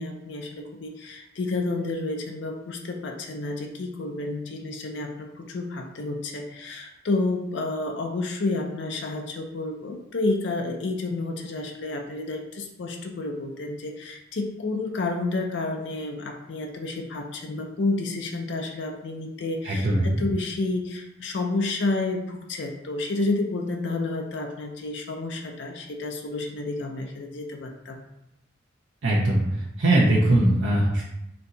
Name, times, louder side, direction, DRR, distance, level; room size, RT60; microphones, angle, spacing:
voice 1, 0.0-28.0, left 2 dB, 65° left, 3 dB, 0.5 m, -30 dB
voice 2, 19.6-20.3 29.0-29.4 29.8-31.0, right 1 dB, 85° right, -5 dB, 0.7 m, -20 dB
4.3 x 2.7 x 3.9 m, 0.86 s
head